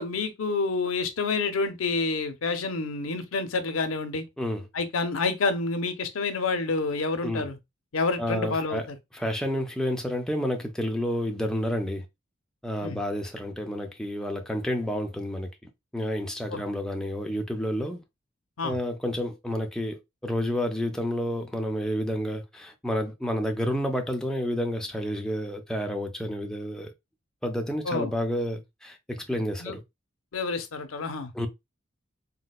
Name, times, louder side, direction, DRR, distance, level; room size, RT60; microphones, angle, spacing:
voice 1, 0.0-4.2 4.7-7.6 7.9-9.0 12.8-13.0 16.5-16.6 18.6-18.7 27.9-28.1 29.6-29.7 30.3-31.5, left 3 dB, 85° left, 0.6 m, -28 dB
voice 2, 8.2-8.9 9.1-12.1 12.6-18.0 18.6-26.9 27.4-29.8 31.3-31.5, equal, 5° left, 0.4 m, -30 dB
3.9 x 2.1 x 2.2 m
head